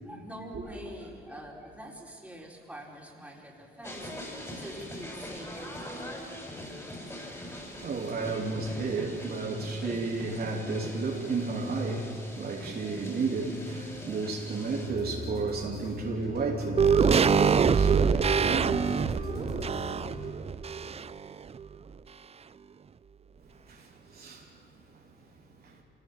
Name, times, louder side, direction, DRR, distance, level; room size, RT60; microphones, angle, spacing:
voice 1, 0.0-6.3, equal, 5° right, 4.6 m, -45 dB
sound 1, 3.8-14.9, equal, 15° left, 6.1 m, -42 dB
voice 2, 7.8-19.0 19.3-19.6 23.6-24.5 24.9-25.0 25.6-25.8, right 3 dB, 50° right, 3.0 m, -33 dB
sound 2, 14.9-20.3, left 2 dB, 55° left, 4.7 m, -41 dB
sound 3, 16.8-21.3 21.5-21.6, right 6 dB, 30° right, 0.6 m, -24 dB
26.5 x 19.0 x 7.4 m
cardioid pair, 90°, 20 cm